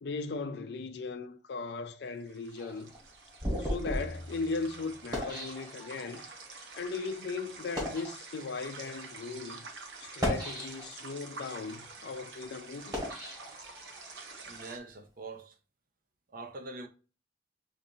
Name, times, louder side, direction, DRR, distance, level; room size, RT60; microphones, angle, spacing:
voice 1, 0.0-2.9 3.6-6.2 6.7-9.7 10.0-13.1, left 4 dB, 65° left, 0.4 m, -37 dB
sound 1, 2.1-14.8, right 3 dB, 90° right, 0.8 m, -48 dB
sound 2, 2.5-6.3 6.9-7.1 7.6-8.1 8.9-9.1 10.0-11.1 11.6-14.1, equal, 25° right, 1.6 m, -37 dB
voice 2, 14.5-15.6 16.3-16.9, right 3 dB, 55° right, 0.6 m, -43 dB
5.0 x 2.6 x 2.7 m
head